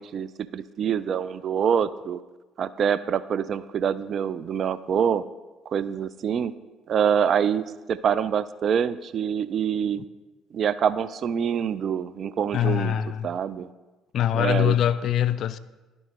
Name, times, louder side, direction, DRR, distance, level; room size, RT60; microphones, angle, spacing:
voice 1, 0.0-2.2 2.6-5.2 5.7-6.5 6.9-7.6 7.9-10.0 10.5-13.0 13.2-13.7 14.3-14.8, right 8 dB, 50° right, 0.3 m, -25 dB
voice 2, 12.5-13.3 14.1-15.6, left 10 dB, 55° left, 0.3 m, -23 dB
11.5 x 3.9 x 3.6 m
hypercardioid pair, 55°, 0 cm